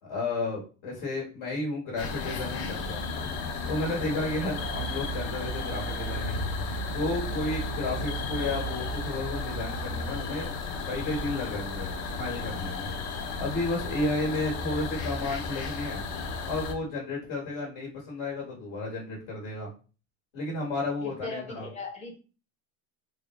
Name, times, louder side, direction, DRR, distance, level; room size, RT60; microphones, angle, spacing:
voice 1, 0.0-3.3 3.7-6.4 6.9-10.5 10.8-16.0 16.4-19.7 20.3-21.7, left 2 dB, 65° left, -2 dB, 1.6 m, -32 dB
sound 1, 2.0-16.7, left 2 dB, 45° left, 0.5 m, -33 dB
voice 2, 21.0-22.2, left 3 dB, 20° left, 1 dB, 0.8 m, -38 dB
3.7 x 2.1 x 3.0 m, 0.36 s
cardioid pair, 155°, 36 cm